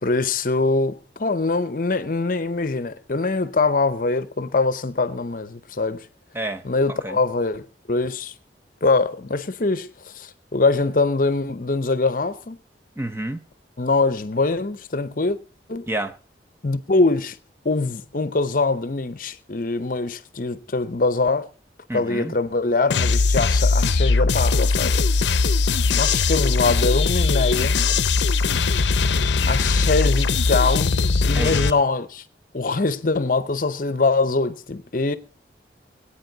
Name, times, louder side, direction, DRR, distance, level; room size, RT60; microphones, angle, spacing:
voice 1, 0.0-6.1 6.6-8.3 8.8-12.6 13.8-15.4 15.7-15.9 16.6-17.4 17.6-21.5 21.9-25.1 25.9-27.8 29.4-31.0 31.2-32.2 32.5-35.2, left 3 dB, 50° left, 0.7 m, -23 dB
voice 2, 13.0-13.4 15.9-16.1 21.9-22.3 31.3-31.7, right 1 dB, 15° right, 0.7 m, -29 dB
sound 1, 22.9-31.7, left 4 dB, 80° left, 0.6 m, -20 dB
23.0 x 8.7 x 3.9 m
head